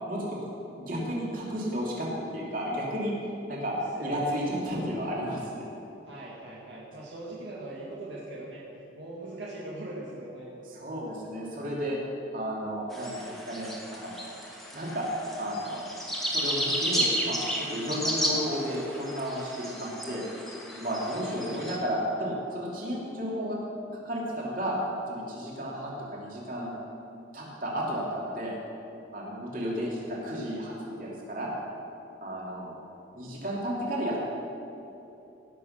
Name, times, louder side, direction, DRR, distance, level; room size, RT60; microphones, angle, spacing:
voice 1, 0.1-0.4 0.7-3.7 4.0-5.7 10.6-12.0 12.3-14.4 14.7-15.0 15.4-15.9 16.3-23.6 24.0-24.7 25.1-26.7 27.3-28.6 29.1-30.7 31.0-31.5 32.2-32.7 33.1-34.2, equal, 45° right, -4 dB, 2.7 m, -33 dB
voice 2, 3.7-4.4 6.1-8.7 8.9-10.6 18.2-18.3 21.4-21.7 29.7-30.0, right 1 dB, 70° right, -5 dB, 1.9 m, -41 dB
sound 1, 12.9-21.8, equal, ahead, 1.4 m, -33 dB
17.5 x 6.2 x 6.4 m, 2.9 s
head